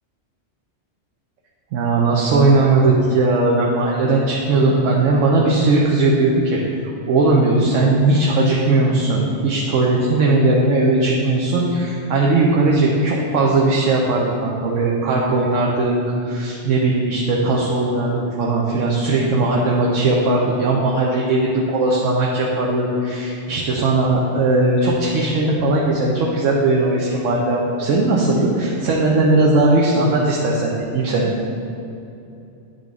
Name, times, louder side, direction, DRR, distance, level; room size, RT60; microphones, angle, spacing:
voice 1, 1.7-6.6 7.1-31.3, right 2 dB, 85° right, -3 dB, 1.0 m, -18 dB
8.8 x 3.9 x 3.6 m, 2.7 s
omnidirectional pair, 1.3 m